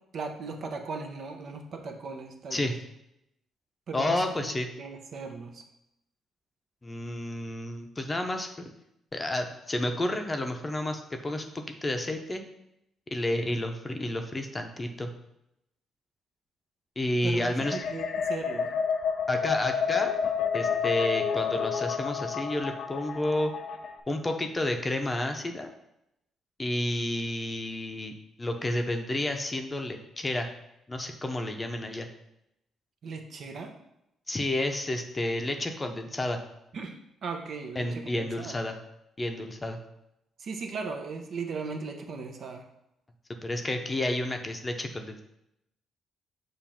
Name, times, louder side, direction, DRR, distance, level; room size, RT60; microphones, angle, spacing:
voice 1, 0.1-2.8 3.9-4.2 4.8-5.6 17.2-18.7 33.0-33.7 36.7-37.0 37.2-38.6 40.4-42.6, right 4 dB, 60° right, 4 dB, 0.9 m, -37 dB
voice 2, 3.9-4.7 6.8-8.5 9.1-12.4 13.1-15.1 17.0-17.8 19.3-20.1 20.5-23.5 24.1-25.7 26.6-28.1 28.4-30.5 30.9-32.1 34.3-36.4 37.8-38.8 39.2-39.8 43.4-45.2, left 1 dB, 20° left, 5 dB, 0.7 m, -30 dB
sound 1, 17.6-24.0, left 7 dB, 65° left, 0.6 m, -29 dB
6.9 x 2.6 x 5.7 m, 0.83 s
cardioid pair, 90°, 0 cm